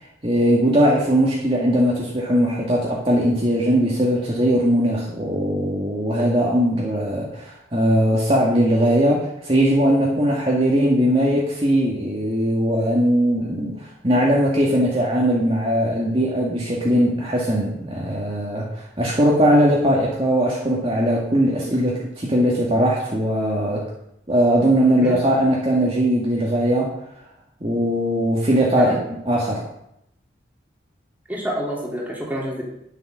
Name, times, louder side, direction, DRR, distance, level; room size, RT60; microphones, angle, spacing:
voice 1, 0.2-23.9 24.3-26.9 27.6-29.0 29.3-29.7, equal, 30° right, -5 dB, 1.9 m, -20 dB
voice 2, 31.3-32.6, equal, 10° right, -3 dB, 3.1 m, -27 dB
10.5 x 8.0 x 6.3 m, 0.78 s
head